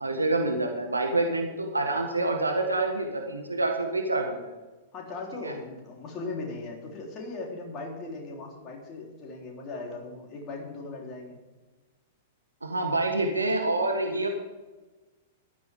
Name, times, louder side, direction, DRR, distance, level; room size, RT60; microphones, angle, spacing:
voice 1, 0.0-4.3 5.4-5.5 12.6-14.3, right 2 dB, 80° right, 3 dB, 1.5 m, -27 dB
voice 2, 4.9-11.4, left 3 dB, 30° left, -1 dB, 3.9 m, -38 dB
15.0 x 12.5 x 3.8 m, 1.2 s
figure-of-eight pair, 100°, 0 cm